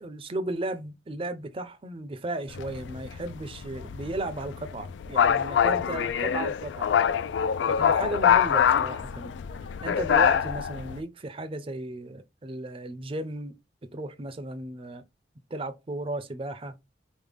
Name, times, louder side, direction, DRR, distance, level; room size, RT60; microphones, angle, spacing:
voice 1, 0.0-6.9 7.7-9.3 9.8-13.6 13.9-15.0 15.5-16.7, right 2 dB, 30° right, 0.5 m, -35 dB
sound 1, 2.5-11.0, left 8 dB, 75° left, 0.3 m, -25 dB
5.1 x 2.1 x 3.4 m
head